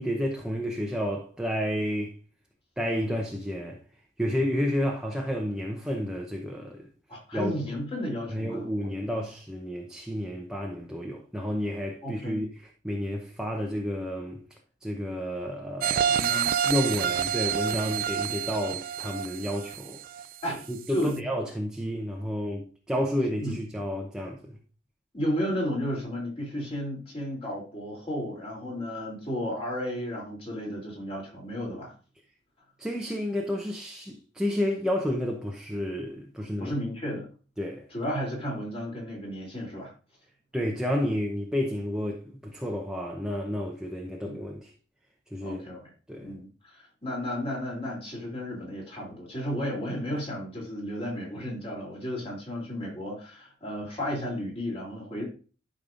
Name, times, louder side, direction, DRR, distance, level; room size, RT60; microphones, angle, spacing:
voice 1, 0.0-2.1 2.8-3.8 4.2-6.9 7.3-7.5 8.3-12.5 12.8-14.4 14.8-16.2 16.7-20.0 20.7-24.6 32.8-36.7 37.6-37.9 40.5-44.7 45.3-45.6 46.1-46.3, equal, 5° right, 0.8 m, -30 dB
voice 2, 7.1-9.2 12.0-12.4 16.1-16.5 17.7-17.9 20.4-21.2 23.4-23.5 25.1-31.9 36.6-37.3 37.9-39.9 44.2-44.4 45.4-45.9 46.2-55.2, equal, 30° left, 3.0 m, -33 dB
sound 1, 15.8-20.6 21.0-21.1, right 9 dB, 50° right, 0.4 m, -28 dB
12.0 x 5.4 x 2.5 m
head